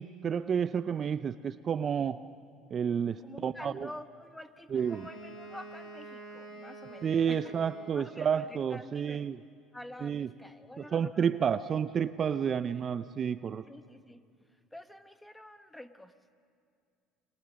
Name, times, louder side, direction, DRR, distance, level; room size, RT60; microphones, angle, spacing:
voice 1, 0.0-2.2 2.7-3.9 4.7-5.1 7.0-9.4 10.0-10.3 10.9-13.6, right 7 dB, 40° right, 13 dB, 0.6 m, -30 dB
voice 2, 3.2-7.5 7.9-9.3 9.7-11.7 12.5-12.7 13.7-16.2, left 1 dB, 5° left, 9 dB, 1.3 m, -48 dB
Wind instrument woodwind instrument, 4.7-8.4, right 2 dB, 65° left, 6.1 m, -47 dB
29.0 x 22.5 x 6.4 m, 2.3 s
hypercardioid pair, 80°, 0 cm